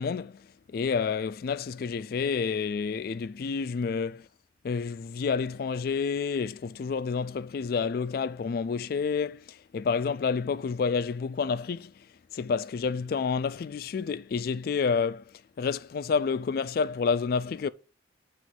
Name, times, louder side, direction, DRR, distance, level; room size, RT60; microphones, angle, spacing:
voice 1, 0.0-4.3 4.6-12.1 12.3-17.7, left 5 dB, 50° left, 0.3 m, -29 dB
7.5 x 3.0 x 5.9 m
head